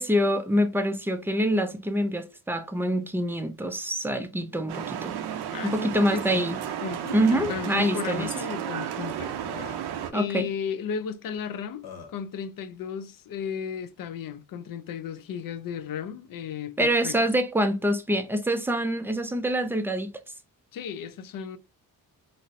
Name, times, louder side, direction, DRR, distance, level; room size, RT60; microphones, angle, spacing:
voice 1, 0.0-5.1 5.6-6.6 7.1-8.3 10.1-10.5 16.8-20.1, equal, 5° right, 0.3 m, -25 dB
sound 1, 4.7-10.1, right 10 dB, 80° right, 0.6 m, -33 dB
voice 2, 5.5-6.5 6.8-9.3 9.6-9.7 10.1-17.2 20.7-21.6, left 7 dB, 60° left, 0.5 m, -35 dB
Burping eructation, 7.8-7.9 8.1-8.3 9.1-9.2 9.5-10.0 11.3-11.4 11.8-12.2, left 6 dB, 75° left, 1.0 m, -42 dB
4.2 x 2.0 x 2.4 m
cardioid pair, 120°, 38 cm